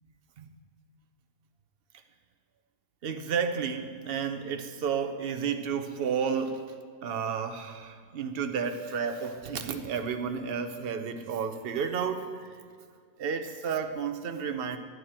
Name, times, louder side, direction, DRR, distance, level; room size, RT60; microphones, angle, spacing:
voice 1, 3.0-6.7 7.0-12.6 13.2-14.8, right 6 dB, 50° right, 7 dB, 0.7 m, -32 dB
11.5 x 9.1 x 4.3 m, 2.1 s
omnidirectional pair, 1.7 m